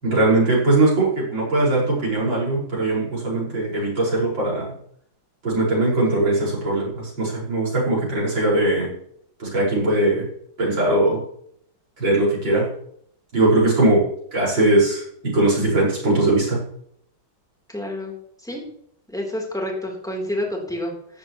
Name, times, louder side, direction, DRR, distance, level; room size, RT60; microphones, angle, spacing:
voice 1, 0.0-4.7 5.4-8.9 9.4-10.2 10.6-11.2 12.0-12.7 13.3-14.1 14.3-16.6, right 2 dB, 65° right, -5 dB, 6.2 m, -20 dB
voice 2, 17.7-18.1 18.4-18.6 19.1-21.2, left 1 dB, ahead, -1 dB, 3.6 m, -29 dB
15.0 x 11.0 x 3.1 m, 0.67 s
omnidirectional pair, 2.2 m